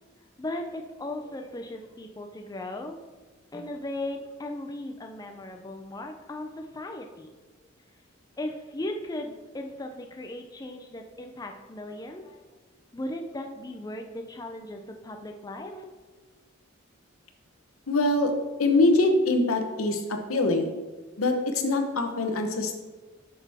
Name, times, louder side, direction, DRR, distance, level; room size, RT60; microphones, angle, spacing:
voice 1, 0.4-3.0 3.5-7.3 8.4-12.4 12.9-15.8, left 1 dB, 20° left, 4 dB, 0.4 m, -37 dB
voice 2, 17.9-18.3 18.6-20.7 21.2-22.8, left 2 dB, 90° left, 5 dB, 0.9 m, -24 dB
8.5 x 6.0 x 3.5 m, 1.3 s
head